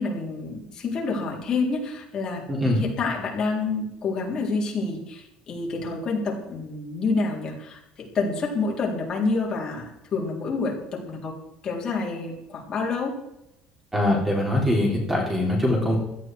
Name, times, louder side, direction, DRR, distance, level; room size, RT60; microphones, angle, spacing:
voice 1, 0.0-2.4 2.7-11.3 11.6-13.1, left 3 dB, 25° left, -2 dB, 3.9 m, -28 dB
voice 2, 2.5-2.8 13.9-16.0, left 1 dB, 10° right, 0 dB, 3.3 m, -22 dB
17.0 x 14.0 x 4.7 m, 0.84 s
cardioid pair, 180°, 2 cm